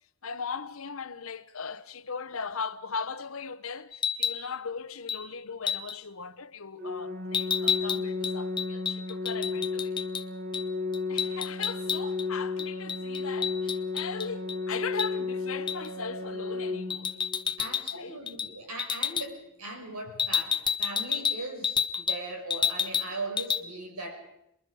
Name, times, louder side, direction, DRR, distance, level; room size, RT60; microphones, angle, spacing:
voice 1, 0.2-10.0 11.1-17.2 17.9-18.2, left 5 dB, 65° left, 1.0 m, -38 dB
sound 1, 3.9-4.4 5.1-5.2 5.7-6.0 7.3-10.2 10.5-10.7 10.9-12.3 12.6-14.6 15.0-15.1 15.7-15.9 16.9-18.0 18.3-18.5 18.8-19.3 20.2-22.2 22.5-23.1 23.4-23.6, left 7 dB, 20° left, 0.7 m, -30 dB
Organ, 6.8-17.8, left 4 dB, 45° right, 1.7 m, -33 dB
voice 2, 17.6-24.3, right 2 dB, 85° right, 5.9 m, -39 dB
27.5 x 22.0 x 4.9 m
head